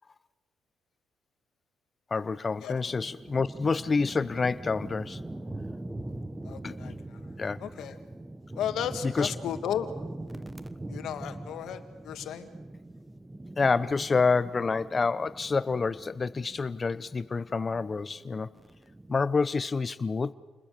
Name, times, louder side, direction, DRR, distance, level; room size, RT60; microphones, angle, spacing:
voice 1, 2.1-5.2 6.6-7.0 7.4-7.6 9.0-9.3 13.6-18.5 19.1-20.3, left 4 dB, 30° left, 15 dB, 0.9 m, -28 dB
sound 1, 2.8-19.4, right 1 dB, 15° right, 1.0 m, -42 dB
voice 2, 6.4-7.3 7.6-8.0 8.6-9.9 10.9-12.5, left 9 dB, 75° left, 8 dB, 1.9 m, -34 dB
29.0 x 20.5 x 6.9 m, 1.2 s
cardioid pair, 90°, 0 cm